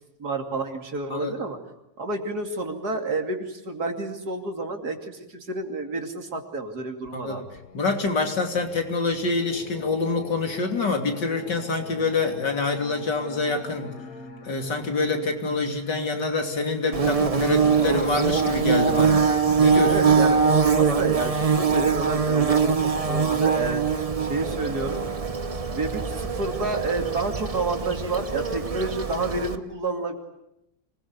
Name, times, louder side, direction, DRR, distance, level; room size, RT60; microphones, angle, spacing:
voice 1, 0.2-1.6 2.0-7.4 19.9-23.8 24.2-25.0 25.7-30.2, right 3 dB, 60° right, 4 dB, 3.2 m, -30 dB
voice 2, 7.1-7.4 7.7-13.9 14.4-19.2 19.6-20.1, left 3 dB, 80° left, 4 dB, 3.7 m, -26 dB
Singing, 7.1-21.8, left 4 dB, 55° left, 2.6 m, -44 dB
Bird / Buzz, 16.9-29.5, right 5 dB, 25° right, 0.8 m, -23 dB
25.5 x 20.5 x 9.8 m, 0.86 s
omnidirectional pair, 1.9 m